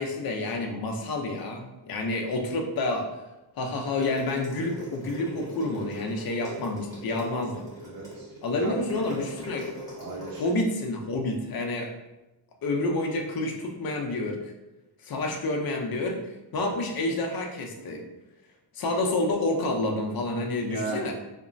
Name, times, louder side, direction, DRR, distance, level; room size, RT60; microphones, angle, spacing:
voice 1, 0.0-3.1 3.6-7.7 8.4-9.7 10.4-11.9 12.6-14.4 15.0-16.2 16.5-18.0 18.7-21.1, left 2 dB, 50° left, 2 dB, 0.5 m, -29 dB
sound 1, 3.8-10.5, equal, 5° left, 1.3 m, -42 dB
voice 2, 7.8-8.8 9.1-9.2 9.9-10.4 16.5-16.7 20.6-21.1, right 3 dB, 45° right, -2 dB, 0.8 m, -37 dB
2.9 x 2.2 x 2.5 m, 1.0 s
cardioid pair, 95°, 48 cm